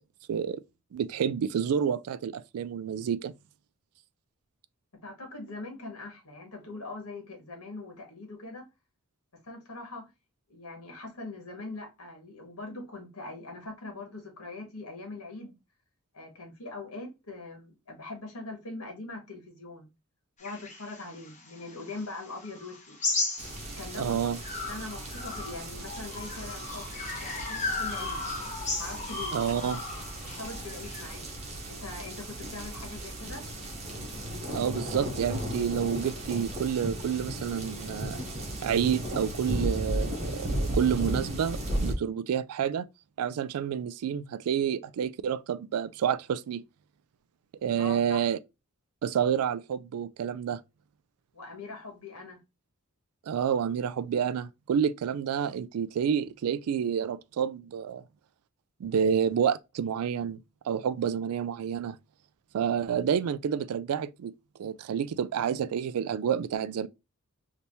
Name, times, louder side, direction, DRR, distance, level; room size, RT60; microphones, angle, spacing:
voice 1, 0.3-0.6 0.9-3.3 24.0-24.4 29.3-29.8 34.5-38.2 38.6-42.9 43.2-46.6 47.6-48.4 49.0-50.6 53.3-58.0 58.8-60.4 60.7-62.0 62.5-64.3 64.6-66.9, right 8 dB, 85° right, 0.3 m, -29 dB
voice 2, 5.0-8.7 9.4-10.1 10.5-15.6 16.1-19.9 20.4-23.0 23.8-24.2 24.6-26.9 27.2-28.2 28.7-29.6 30.2-31.3 31.7-33.5 47.7-48.2 51.3-52.4, left 2 dB, 85° left, 1.5 m, -42 dB
sound 1, 20.4-24.0 24.4-31.1, left 3 dB, 35° left, 1.0 m, -36 dB
sound 2, 23.4-41.9, right 1 dB, 30° right, 0.9 m, -35 dB
3.3 x 2.9 x 2.7 m
head